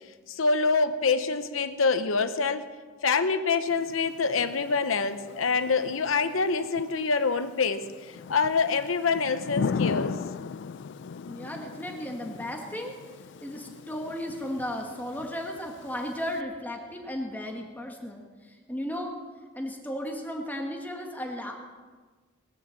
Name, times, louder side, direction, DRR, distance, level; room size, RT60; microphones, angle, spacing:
voice 1, 0.3-2.7 3.0-10.2, left 4 dB, 90° left, 10 dB, 0.8 m, -26 dB
Thunder / Rain, 3.7-16.4, left 5 dB, 65° left, 0.4 m, -38 dB
voice 2, 11.3-12.9 13.4-18.2 18.7-19.1 19.5-21.5, equal, 10° left, 1 dB, 1.4 m, -35 dB
20.0 x 7.1 x 7.4 m, 1.4 s
head